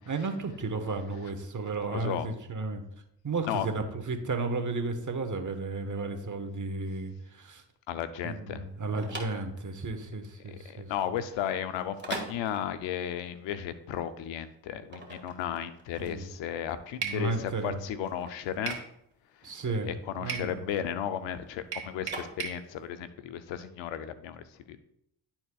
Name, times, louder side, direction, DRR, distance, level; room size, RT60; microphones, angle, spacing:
voice 1, 0.0-2.8 3.2-7.6 8.2-10.9 16.0-16.3 17.0-17.8 19.4-19.9 20.2-20.6, right 3 dB, 45° right, 6 dB, 1.3 m, -33 dB
voice 2, 1.9-2.3 3.5-3.7 7.9-8.6 10.5-18.8 19.8-24.8, left 9 dB, 90° left, 11 dB, 0.6 m, -34 dB
sound 1, 8.6-22.9, right 2 dB, 25° right, 2.0 m, -44 dB
sound 2, 17.0-17.2 18.7-18.9 20.3-20.5 21.7-22.6, right 7 dB, 65° right, 1.6 m, -35 dB
11.0 x 4.4 x 2.3 m, 0.76 s
supercardioid pair, 50°, 44 cm